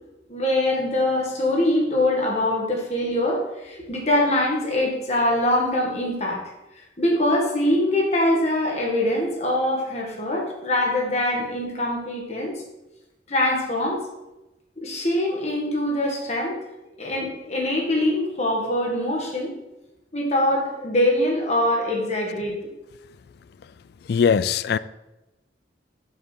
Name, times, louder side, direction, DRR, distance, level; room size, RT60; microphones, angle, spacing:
voice 1, 0.3-6.4 6.8-12.6 13.3-14.0 14.8-16.6 17.0-19.5 20.1-22.6, left 1 dB, 40° left, 1.7 m, -23 dB
voice 2, 24.1-24.8, left 6 dB, 60° left, 0.3 m, -20 dB
6.8 x 6.5 x 4.4 m
head